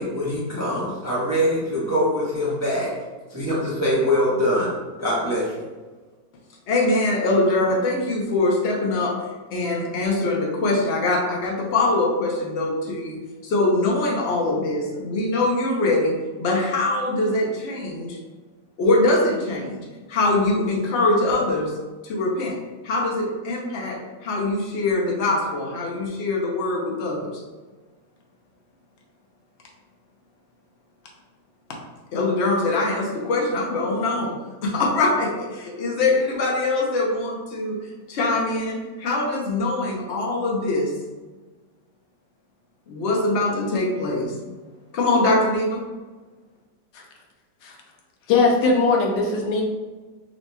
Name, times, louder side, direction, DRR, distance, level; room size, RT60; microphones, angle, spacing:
voice 1, 0.0-2.9 3.3-4.7 5.0-5.6, equal, 15° right, -7 dB, 0.6 m, -23 dB
voice 2, 6.7-9.1 9.5-16.1 16.4-18.2 18.8-19.8 20.1-21.7 22.0-22.6 22.8-27.3 32.1-34.3 34.6-37.8 38.1-40.9 42.9-44.3 44.9-45.8, left 2 dB, 55° left, -1 dB, 0.8 m, -23 dB
voice 3, 48.3-49.6, left 4 dB, 90° left, 0 dB, 1.4 m, -20 dB
5.6 x 2.8 x 2.2 m, 1.3 s
omnidirectional pair, 1.9 m